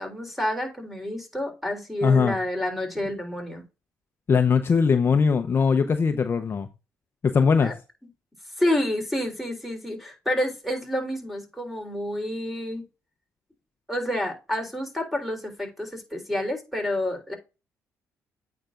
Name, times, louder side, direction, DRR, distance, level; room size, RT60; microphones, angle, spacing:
voice 1, 0.0-3.6 7.6-7.7 8.6-12.8 13.9-17.3, left 1 dB, ahead, 3.5 m, -29 dB
voice 2, 2.0-2.4 4.3-6.7 7.2-7.7, left 5 dB, 40° left, 0.7 m, -20 dB
8.8 x 5.8 x 2.5 m
cardioid pair, 90°, 6 cm